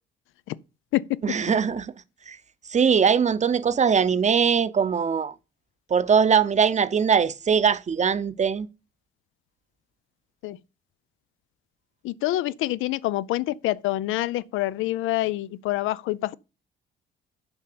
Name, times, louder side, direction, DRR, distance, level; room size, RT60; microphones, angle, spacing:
voice 1, 1.2-1.9 2.3-2.4 2.7-5.3 5.9-8.7, right 6 dB, 35° right, 0.8 m, -21 dB
voice 2, 12.0-16.3, left 16 dB, 85° left, 0.5 m, -26 dB
7.1 x 5.5 x 6.7 m
cardioid pair, 90°, 20 cm